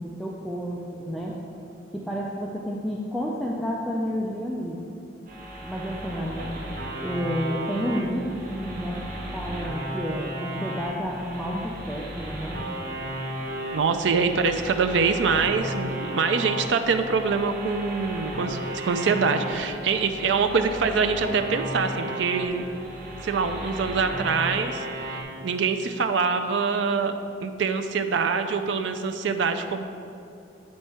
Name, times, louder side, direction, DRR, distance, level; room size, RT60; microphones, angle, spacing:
voice 1, 0.0-1.4 1.9-4.8 5.6-6.7 7.0-9.1 9.3-12.7, equal, ahead, -4 dB, 0.4 m, -30 dB
sound 1, 5.3-25.2, right 1 dB, 50° right, 1.0 m, -35 dB
voice 2, 13.7-22.7 23.2-24.8 25.4-27.1 27.4-29.8, right 5 dB, 80° right, 7 dB, 0.4 m, -24 dB
8.5 x 4.5 x 4.3 m, 2.7 s
head